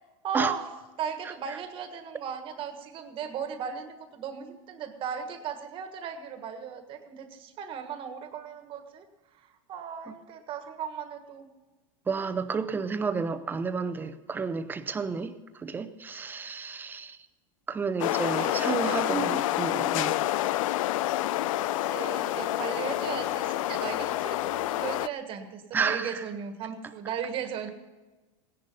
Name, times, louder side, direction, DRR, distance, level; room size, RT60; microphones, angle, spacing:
voice 1, 0.2-0.6 1.0-9.1 9.3-11.5 18.4-19.3 21.6-27.7, right 7 dB, 30° right, 7 dB, 1.5 m, -37 dB
voice 2, 1.2-1.6 10.1-10.2 12.1-17.2 17.7-20.2 25.7-26.2, right 5 dB, 10° right, 11 dB, 0.6 m, -31 dB
sound 1, 18.0-25.1, left 14 dB, 75° left, 0.5 m, -28 dB
17.5 x 10.5 x 5.4 m, 1.2 s
supercardioid pair, 160°, 17 cm